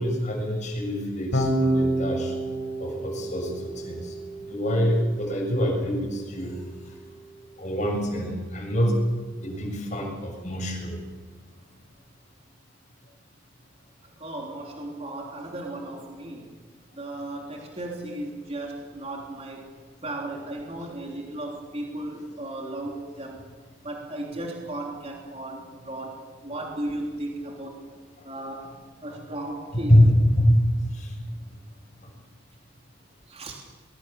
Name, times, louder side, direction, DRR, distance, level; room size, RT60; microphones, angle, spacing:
voice 1, 0.0-2.3 2.8-4.1 4.4-6.6 7.6-8.9 9.4-11.0 28.6-28.7 29.7-30.6 30.9-31.2, equal, 40° left, 1 dB, 7.0 m, -24 dB
Electric guitar / Bass guitar, 1.3-7.7, right 1 dB, 65° left, 4.5 m, -30 dB
voice 2, 14.2-16.5 17.0-19.7 20.0-23.4 23.8-27.8 28.2-28.7 29.0-29.9 33.3-33.5, right 1 dB, 30° right, 0 dB, 3.4 m, -35 dB
22.5 x 22.0 x 7.1 m, 1.5 s
head